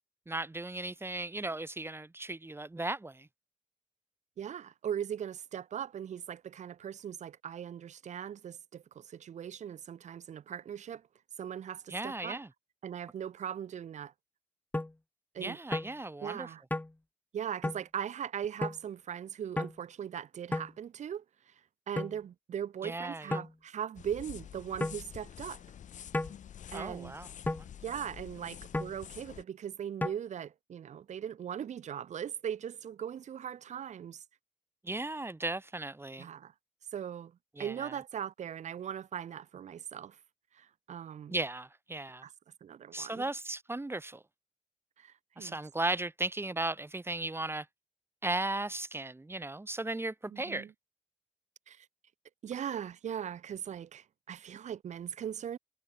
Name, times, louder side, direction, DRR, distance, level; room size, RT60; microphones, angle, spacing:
voice 1, 0.3-3.3 11.9-12.5 15.4-16.5 22.8-23.4 26.7-27.3 34.8-36.3 37.6-37.9 41.3-42.2 42.9-44.2 45.4-47.7 48.2-50.7, right 2 dB, 20° right, 1.4 m, -36 dB
voice 2, 4.4-11.0 11.4-12.4 12.8-14.1 15.3-15.6 16.2-16.6 17.3-21.5 21.9-25.6 26.7-27.2 27.8-34.2 36.2-36.5 36.9-37.3 37.6-40.2 40.5-41.4 42.2-42.3 42.6-43.2 45.0-45.6 50.3-50.7 51.7-51.9 52.4-55.6, right 9 dB, 65° right, 0.6 m, -39 dB
sound 1, 14.7-14.9 15.7-15.9 16.7-16.9 17.6-17.8 18.6-18.8 19.6-19.7 20.5-20.7 22.0-22.2 23.3-23.5 24.8-25.0 26.1-26.4 27.5-27.7 28.7-29.0 30.0-30.1, left 2 dB, 15° left, 0.9 m, -33 dB
sound 2, 23.9-29.4, left 9 dB, 70° left, 0.7 m, -48 dB
cardioid pair, 65°, 13 cm